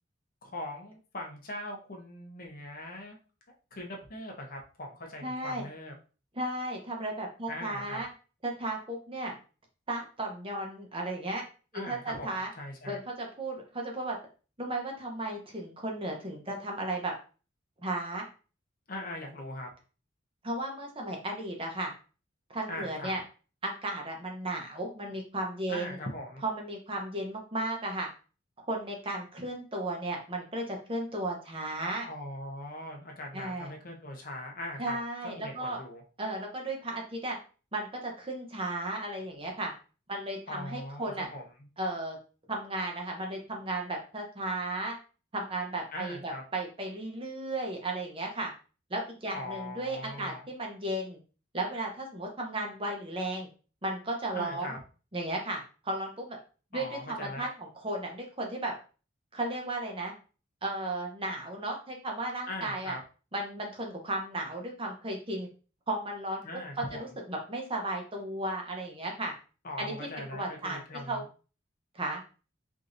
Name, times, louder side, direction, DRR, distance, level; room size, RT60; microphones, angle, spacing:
voice 1, 0.4-3.2 3.7-5.9 7.5-8.0 11.7-12.3 12.6-13.0 18.9-19.7 22.7-23.2 25.7-26.4 32.1-35.0 35.2-36.0 40.5-41.4 45.9-46.4 49.3-50.5 54.3-54.8 56.7-57.5 62.5-63.0 66.4-67.0 69.6-71.3, left 1 dB, 45° left, 1 dB, 0.8 m, -40 dB
voice 2, 5.2-5.6 6.3-8.1 8.4-9.4 9.9-11.4 11.7-12.5 12.8-14.2 14.6-17.1 17.8-18.3 20.4-21.9 22.5-23.2 23.6-26.0 26.4-28.1 28.7-32.1 33.3-33.7 34.8-35.8 36.2-37.4 37.7-39.7 40.1-41.3 41.8-42.2 42.5-44.9 45.3-48.5 48.9-51.2 51.5-53.5 53.8-54.7 55.1-56.4 56.7-58.7 59.3-60.1 60.6-63.0 63.3-65.5 65.9-66.4 66.8-69.3 69.8-70.8 71.1-71.2 71.9-72.2, right 2 dB, 25° right, 1 dB, 0.8 m, -35 dB
4.8 x 2.6 x 2.6 m, 0.36 s
head